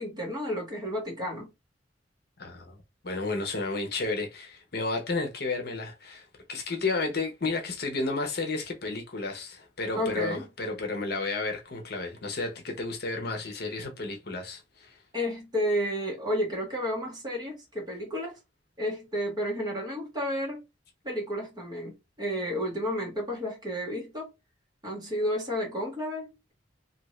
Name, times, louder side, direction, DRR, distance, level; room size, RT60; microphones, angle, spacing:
voice 1, 0.0-1.5 9.9-10.5 15.1-18.4 18.8-20.6 21.0-24.3 24.8-26.5, equal, 25° right, 1.6 m, -31 dB
voice 2, 2.4-2.8 3.0-15.0, left 3 dB, 60° left, 0.8 m, -32 dB
2.7 x 2.6 x 3.1 m
head